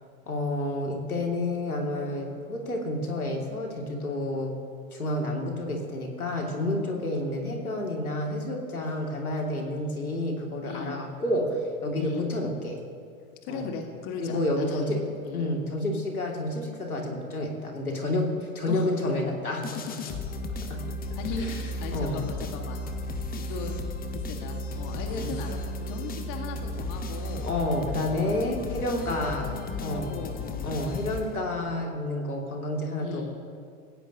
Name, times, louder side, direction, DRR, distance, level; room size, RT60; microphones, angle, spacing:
voice 1, 0.3-4.6 4.9-12.8 13.5-13.7 14.2-20.1 20.7-20.8 21.4-21.6 21.9-22.2 25.2-25.3 27.4-30.2 30.6-33.3, left 1 dB, 80° left, 1 dB, 2.9 m, -30 dB
voice 2, 9.6-9.9 10.6-11.0 11.9-12.3 13.4-14.9 15.2-15.5 18.7-19.2 21.2-22.8 23.3-23.8 24.1-27.5 28.2-28.6 28.9-30.7 33.0-33.3, left 4 dB, 45° left, 3 dB, 2.0 m, -38 dB
sound 1, 19.6-31.7, left 2 dB, 20° left, 1.3 m, -34 dB
28.5 x 16.5 x 3.0 m, 2.2 s
figure-of-eight pair, 90°, 43 cm